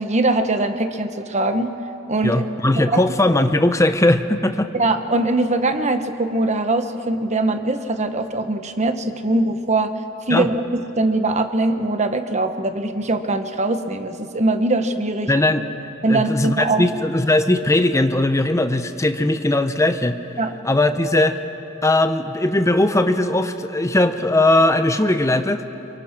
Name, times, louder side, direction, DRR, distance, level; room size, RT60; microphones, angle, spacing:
voice 1, 0.0-1.7 2.1-2.4 2.9-3.0 4.7-9.9 10.3-10.6 11.0-15.3 16.0-16.8 20.4-20.5, right 2 dB, 35° right, 7 dB, 1.3 m, -21 dB
voice 2, 2.2-4.7 10.3-10.5 15.3-15.7 16.1-20.2 20.6-21.4 21.8-25.6, left 1 dB, 15° left, 9 dB, 0.8 m, -19 dB
27.5 x 24.5 x 6.0 m, 2.9 s
head